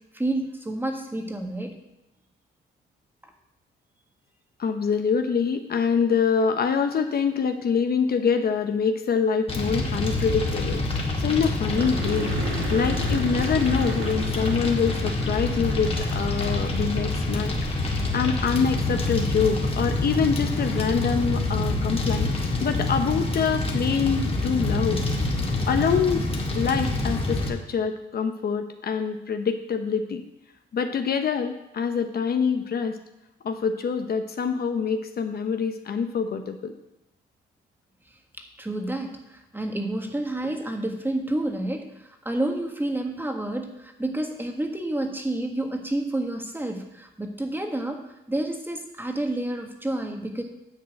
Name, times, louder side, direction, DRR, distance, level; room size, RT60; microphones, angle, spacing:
voice 1, 0.1-1.7 38.4-50.4, right 1 dB, 10° right, 4 dB, 1.6 m, -29 dB
voice 2, 4.6-10.8 11.2-12.3 12.7-17.6 18.1-22.3 22.6-25.0 25.7-26.3 26.5-30.2 30.7-33.0 33.4-36.7, left 6 dB, 50° left, 7 dB, 0.9 m, -25 dB
Fire, 9.5-27.5, left 2 dB, 30° left, 2.0 m, -26 dB
sound 1, 10.3-10.4 10.6-10.7 11.0-11.1 11.7-17.2 19.5-19.6 22.4-22.5, right 3 dB, 75° right, 1.9 m, -37 dB
9.9 x 4.5 x 7.8 m, 0.90 s
cardioid pair, 90°, 20 cm